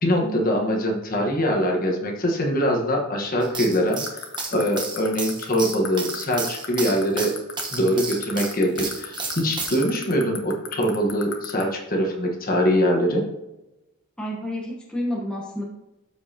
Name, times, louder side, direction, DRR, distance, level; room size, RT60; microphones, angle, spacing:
voice 1, 0.0-4.0 4.5-7.3 7.7-13.2, equal, 40° left, 1 dB, 1.4 m, -23 dB
sound 1, 3.4-9.8, right 4 dB, 20° right, 1.1 m, -32 dB
sound 2, 3.9-11.6, left 9 dB, 60° left, 1.2 m, -32 dB
voice 2, 14.2-15.6, equal, 5° left, -3 dB, 1.1 m, -30 dB
12.5 x 5.2 x 2.9 m, 0.96 s
head